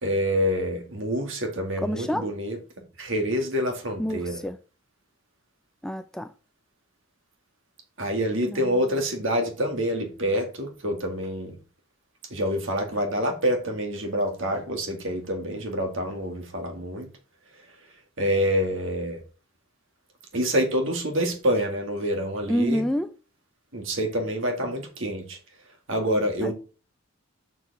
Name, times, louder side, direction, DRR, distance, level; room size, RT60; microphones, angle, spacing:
voice 1, 0.0-2.6 3.0-4.4 8.0-11.6 12.3-17.1 18.2-19.2 20.3-22.8 23.7-25.4 25.9-26.5, equal, 60° right, 2.1 m, -27 dB
voice 2, 1.8-2.3 4.0-4.6 5.8-6.3 8.5-8.6 22.5-23.1 26.4-26.5, equal, 5° left, 0.3 m, -27 dB
7.0 x 6.1 x 4.1 m
head